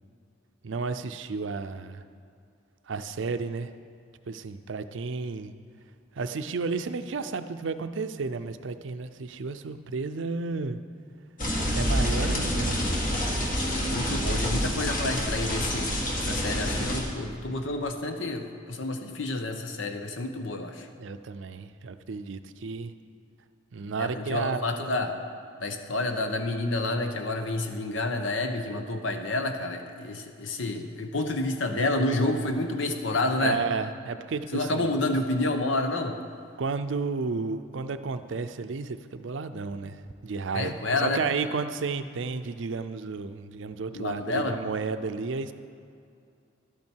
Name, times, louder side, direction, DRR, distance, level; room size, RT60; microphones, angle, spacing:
voice 1, 0.6-2.0 2.9-3.7 4.3-5.6 6.1-10.8 11.7-13.0 21.0-22.9 23.7-24.6 33.4-35.0 36.6-45.5, right 4 dB, 70° right, 10 dB, 0.5 m, -32 dB
sound 1, 11.4-17.0, equal, 45° left, 1.7 m, -27 dB
voice 2, 13.9-20.9 24.0-25.2 25.6-33.6 34.5-36.2 40.5-41.2 43.9-44.6, left 2 dB, 75° left, 6 dB, 0.9 m, -29 dB
11.5 x 8.6 x 4.5 m, 2.4 s
head